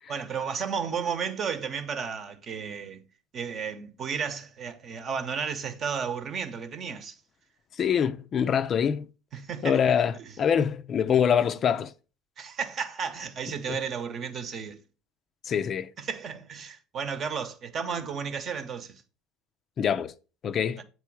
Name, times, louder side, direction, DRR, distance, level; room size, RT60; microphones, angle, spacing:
voice 1, 0.1-3.0 3.3-7.1 9.3-9.8 12.4-14.8 16.0-19.0, right 6 dB, 45° right, 0.9 m, -33 dB
voice 2, 7.7-9.1 9.6-11.9 13.7-13.8 15.4-15.9 19.8-20.1 20.4-20.8, left 8 dB, 40° left, 0.4 m, -25 dB
7.7 x 3.2 x 4.6 m
hypercardioid pair, 85°, 0 cm